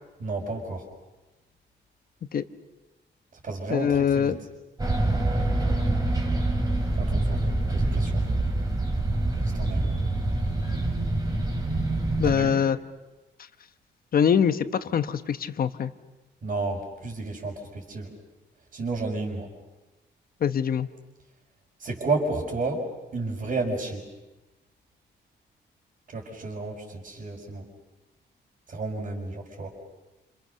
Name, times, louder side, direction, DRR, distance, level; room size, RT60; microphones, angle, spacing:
voice 1, 0.2-0.8 3.4-4.3 7.0-7.4 7.7-8.2 9.5-9.9 12.2-12.6 16.4-18.1 18.7-19.5 21.8-22.8 23.1-24.1 26.1-27.7 28.7-29.7, right 3 dB, 45° right, -5 dB, 5.2 m, -31 dB
voice 2, 3.7-4.4 12.2-12.8 14.1-15.9 20.4-20.9, left 8 dB, 50° left, 11 dB, 1.1 m, -23 dB
sound 1, 4.8-12.3, right 2 dB, 20° right, 3.7 m, -25 dB
29.0 x 27.5 x 6.7 m, 1.1 s
wide cardioid pair, 145°, 19 cm